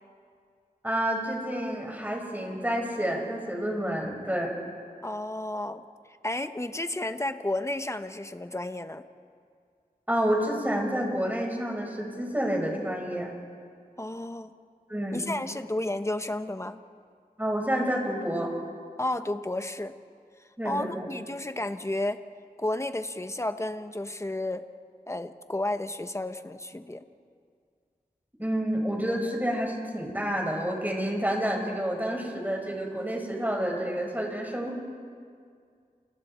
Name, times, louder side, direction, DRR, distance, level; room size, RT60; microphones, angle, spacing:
voice 1, 0.8-4.6 10.1-13.3 14.9-15.2 17.4-18.5 20.6-21.1 28.4-34.8, equal, 10° right, 0 dB, 5.2 m, -29 dB
voice 2, 5.0-5.8 6.2-9.0 14.0-14.5 15.1-16.8 19.0-19.9 20.6-22.2 22.6-24.6 25.1-27.0, left 1 dB, 20° left, 9 dB, 1.1 m, -32 dB
29.5 x 28.5 x 4.4 m, 2.2 s
wide cardioid pair, 65°, 15 cm